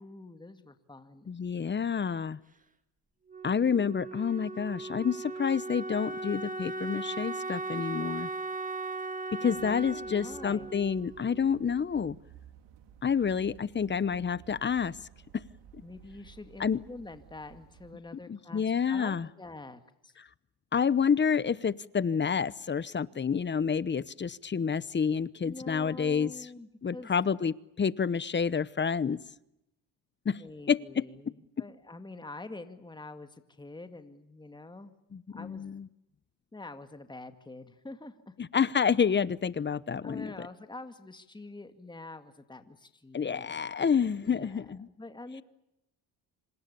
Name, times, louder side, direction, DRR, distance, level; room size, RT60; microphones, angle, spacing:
voice 1, 0.0-1.3 9.4-10.7 15.8-20.2 25.4-27.1 30.3-34.9 35.3-35.6 36.5-38.3 40.0-43.7 44.2-45.4, left 2 dB, 10° left, 9 dB, 2.1 m, -46 dB
voice 2, 1.3-2.4 3.4-8.3 9.3-12.2 13.0-15.0 15.3-15.4 16.6-16.8 18.3-19.3 20.7-26.3 26.8-29.2 30.2-30.4 30.7-31.0 35.1-35.9 38.4-40.3 43.1-44.9, left 6 dB, 25° left, 19 dB, 0.9 m, -29 dB
Wind instrument woodwind instrument, 3.3-12.0, right 3 dB, 20° right, 2.1 m, -38 dB
sound 1, 9.5-17.9, right 9 dB, 85° right, 4.3 m, -55 dB
27.0 x 26.5 x 6.9 m, 0.85 s
cardioid pair, 110°, 42 cm